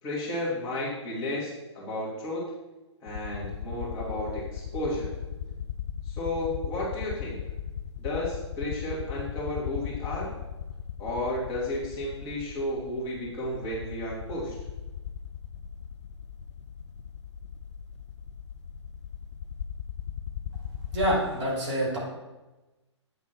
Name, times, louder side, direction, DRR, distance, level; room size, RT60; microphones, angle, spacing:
voice 1, 0.0-2.4 3.0-5.1 6.0-7.4 8.0-10.3 11.0-14.6, left 1 dB, 25° left, -6 dB, 2.3 m, -33 dB
sound 1, 3.1-21.2, left 9 dB, 70° left, 0.5 m, -37 dB
voice 2, 20.9-22.0, equal, 30° right, -4 dB, 2.9 m, -26 dB
8.7 x 3.6 x 5.9 m, 1.1 s
figure-of-eight pair, 130°, 16 cm